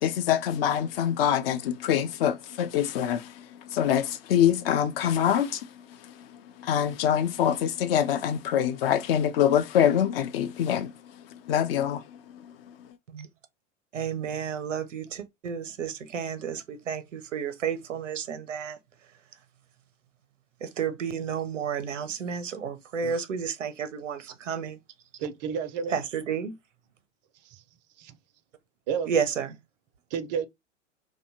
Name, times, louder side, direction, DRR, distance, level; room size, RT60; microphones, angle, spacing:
voice 1, 0.0-5.7 6.6-10.9 11.5-12.0, left 9 dB, 50° left, 0.5 m, -25 dB
voice 2, 13.9-18.8 20.6-24.8 25.9-26.6 29.1-29.5, right 7 dB, 85° right, 0.6 m, -31 dB
voice 3, 25.2-25.9 27.4-27.6 28.0-28.2 28.9-29.1 30.1-30.5, right 7 dB, 40° right, 0.4 m, -31 dB
2.5 x 2.1 x 2.7 m
figure-of-eight pair, 95°, 37 cm